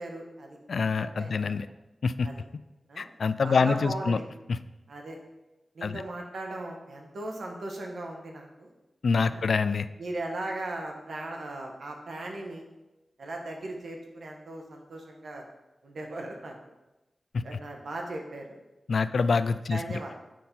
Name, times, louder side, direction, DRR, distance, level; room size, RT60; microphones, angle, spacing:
voice 1, 0.0-1.4 2.2-2.4 2.9-3.1 3.4-4.2 4.9-5.2 5.7-8.7 9.3-9.4 10.0-12.6 13.2-15.5 15.8-16.5 17.4-18.6 19.7-20.1, right 2 dB, 85° right, 2 dB, 1.2 m, -38 dB
voice 2, 0.7-1.7 2.0-2.3 3.0-4.2 5.8-6.0 9.0-9.9 17.3-17.4 18.9-19.8, left 5 dB, 80° left, 13 dB, 0.3 m, -25 dB
7.6 x 5.4 x 4.3 m, 1.0 s
wide cardioid pair, 85°, 0 cm